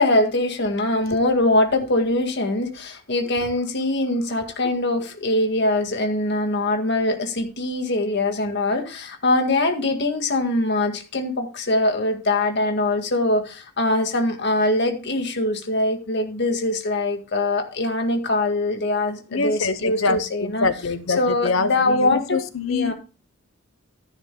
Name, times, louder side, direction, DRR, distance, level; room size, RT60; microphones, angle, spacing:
voice 1, 0.0-20.7 21.1-22.4 22.7-22.9, left 2 dB, 60° left, 5 dB, 1.9 m, -22 dB
voice 2, 19.3-22.9, left 4 dB, 80° left, 13 dB, 0.9 m, -25 dB
13.0 x 11.0 x 2.2 m, 0.33 s
head